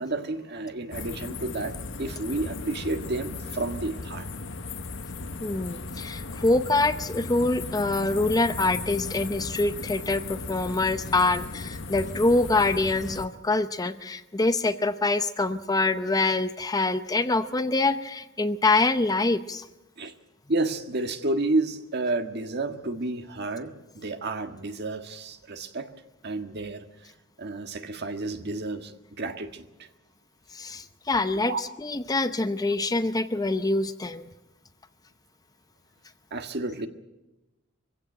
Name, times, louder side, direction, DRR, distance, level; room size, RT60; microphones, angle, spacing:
voice 1, 0.0-4.2 20.0-20.1 20.5-25.9 26.2-26.8 27.4-29.9 31.4-31.6 36.3-36.9, right 2 dB, 55° right, 7 dB, 1.6 m, -31 dB
sound 1, 0.9-13.3, left 3 dB, 65° left, 1.2 m, -36 dB
voice 2, 5.4-19.7 30.5-34.3, left 2 dB, 20° left, 11 dB, 0.7 m, -25 dB
23.0 x 16.0 x 8.9 m, 1.0 s
head